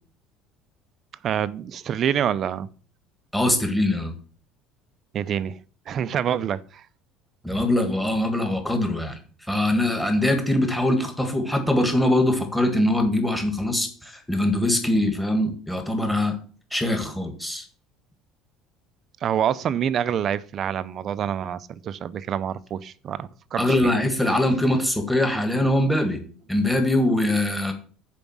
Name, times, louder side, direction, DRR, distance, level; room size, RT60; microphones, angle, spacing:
voice 1, 1.2-2.7 5.1-5.6 5.9-6.9 19.2-23.9, right 9 dB, 40° right, 0.5 m, -26 dB
voice 2, 3.3-4.1 7.4-9.2 9.5-16.4 16.7-17.6 23.6-26.2 26.5-27.7, left 1 dB, 5° left, 1.7 m, -22 dB
7.1 x 5.1 x 7.2 m
cardioid pair, 135°, 0 cm